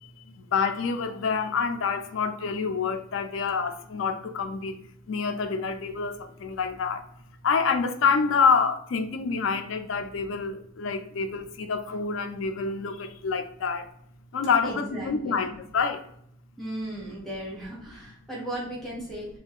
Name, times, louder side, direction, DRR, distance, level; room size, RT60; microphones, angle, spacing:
voice 1, 0.0-4.8 5.1-7.1 7.4-13.9 14.3-16.0, left 5 dB, 85° left, 0.4 m, -27 dB
voice 2, 14.6-15.5 16.6-19.3, right 1 dB, ahead, 0.8 m, -36 dB
2.4 x 2.2 x 3.4 m
head